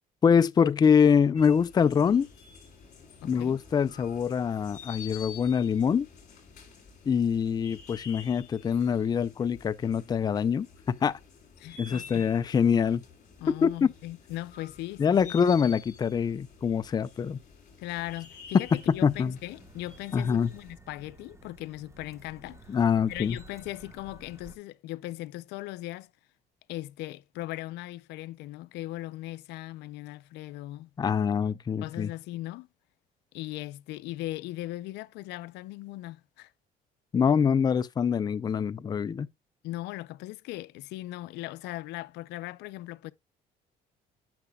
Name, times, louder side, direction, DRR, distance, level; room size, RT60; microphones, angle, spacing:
voice 1, 0.2-2.3 3.2-6.1 7.1-11.2 11.8-13.0 13.5-13.9 15.0-17.4 18.7-19.4 20.1-20.5 22.7-23.4 31.0-32.1 37.1-39.3, left 7 dB, 25° left, 0.4 m, -24 dB
sound 1, 1.4-20.7, left 6 dB, 45° left, 5.8 m, -50 dB
voice 2, 3.2-3.6 11.6-12.3 13.4-15.3 17.8-22.8 23.1-26.1 26.7-30.9 31.8-32.7 33.3-36.5 39.6-43.1, left 17 dB, 85° left, 0.5 m, -39 dB
sound 2, 18.6-24.6, right 2 dB, 15° right, 1.1 m, -53 dB
10.0 x 6.6 x 2.2 m
cardioid pair, 110°, 17 cm